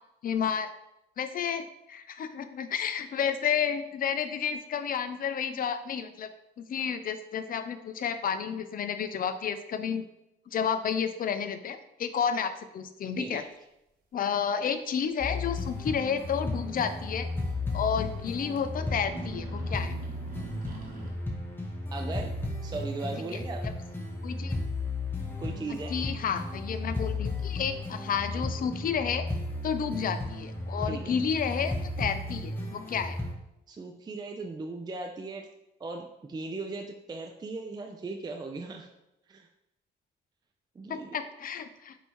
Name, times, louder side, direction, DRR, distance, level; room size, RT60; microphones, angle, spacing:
voice 1, 0.2-0.7 1.2-6.3 6.6-10.0 10.5-13.4 14.1-17.3 17.7-19.9 23.3-23.4 24.2-24.6 25.9-29.3 29.6-33.2 40.9-42.0, left 7 dB, 45° left, 10 dB, 0.4 m, -31 dB
voice 2, 13.2-13.5 21.9-22.3 22.6-23.7 25.4-25.9 30.9-31.0 33.7-35.5 35.8-38.9 39.3-39.5 40.8-41.2, right 3 dB, 20° right, 3 dB, 0.4 m, -38 dB
sound 1, 15.0-15.1 15.4-15.5 17.0-17.1 17.4-17.5 18.4-18.6 18.9-21.1, right 3 dB, 45° right, 1.0 m, -44 dB
sound 2, 15.2-33.3, left 2 dB, 10° left, 0.9 m, -34 dB
5.2 x 2.7 x 3.1 m, 0.88 s
cardioid pair, 90°, 20 cm